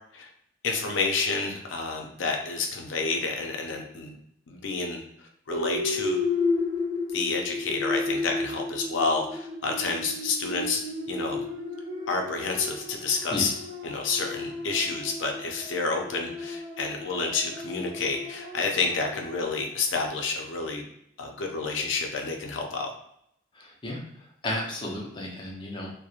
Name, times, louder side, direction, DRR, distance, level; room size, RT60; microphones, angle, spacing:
voice 1, 0.6-4.2 4.5-5.0 5.5-6.2 7.1-10.8 11.1-11.4 12.1-13.5 13.8-20.8 21.2-22.9, left 4 dB, 70° left, 2 dB, 0.5 m, -29 dB
sound 1, 5.5-19.7, left 3 dB, 35° right, 0.9 m, -33 dB
voice 2, 23.6-24.0 24.4-25.9, left 1 dB, 25° left, -1 dB, 0.5 m, -33 dB
2.8 x 2.0 x 2.4 m, 0.74 s
head